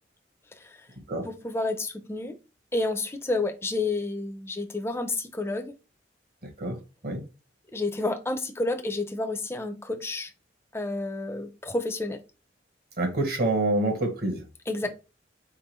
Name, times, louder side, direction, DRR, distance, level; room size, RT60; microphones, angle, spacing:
voice 1, 1.2-2.4 2.7-5.7 7.7-10.3 10.7-12.2 14.7-14.9, left 2 dB, 15° left, 7 dB, 0.6 m, -30 dB
voice 2, 13.0-14.4, right 2 dB, 55° right, 3 dB, 1.4 m, -26 dB
4.3 x 3.7 x 3.1 m, 0.30 s
head